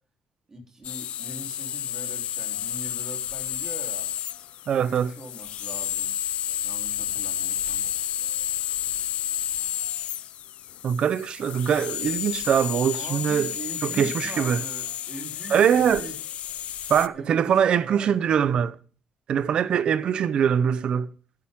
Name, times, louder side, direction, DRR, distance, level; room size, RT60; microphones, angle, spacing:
voice 1, 0.5-4.1 4.7-6.1 6.6-7.9 12.9-16.2 17.1-18.4, right 2 dB, 25° right, 3.6 m, -42 dB
sound 1, 0.8-17.1, left 11 dB, 70° left, 0.5 m, -31 dB
voice 2, 4.7-5.1 10.8-13.5 13.8-14.6 15.5-16.0 16.9-18.7 19.3-21.1, right 8 dB, 50° right, 0.7 m, -22 dB
14.0 x 10.5 x 3.7 m
cardioid pair, 150°, 2 cm